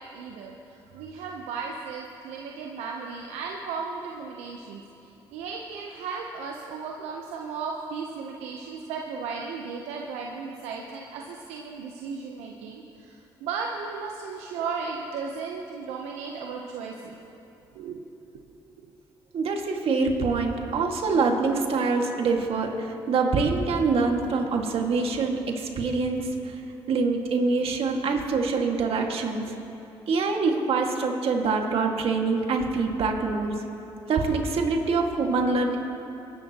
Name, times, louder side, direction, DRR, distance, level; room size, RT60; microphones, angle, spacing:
voice 1, 0.0-4.8 5.3-17.2 17.8-18.0, right 5 dB, 85° right, 0 dB, 0.8 m, -35 dB
voice 2, 19.3-26.6 26.9-29.5 30.1-33.5 34.1-35.8, right 4 dB, 65° right, 2 dB, 1.9 m, -25 dB
23.0 x 11.0 x 2.9 m, 2.9 s
supercardioid pair, 60°, 11 cm